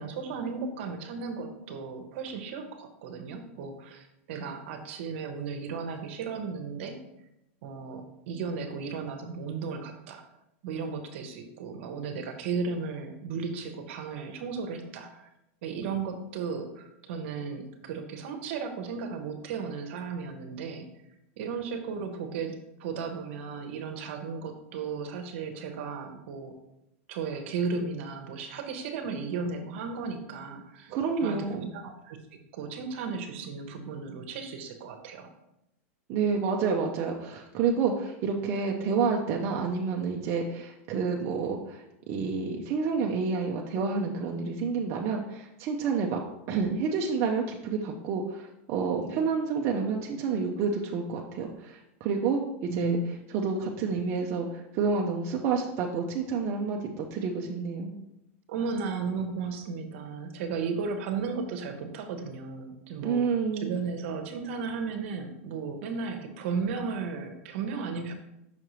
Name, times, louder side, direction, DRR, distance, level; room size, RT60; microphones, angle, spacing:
voice 1, 0.0-7.0 7.6-10.2 10.6-15.3 15.6-20.9 21.4-26.5 27.1-30.9 31.2-31.5 31.7-32.2 32.5-35.3 52.7-53.1 58.5-63.3 63.5-68.1, right 5 dB, 60° right, 6 dB, 0.9 m, -35 dB
voice 2, 30.9-31.7 36.1-46.2 46.5-53.0 53.3-58.0 63.0-63.7, right 5 dB, 35° right, 0 dB, 0.5 m, -29 dB
5.8 x 5.3 x 3.1 m, 0.87 s
supercardioid pair, 155°, 7 cm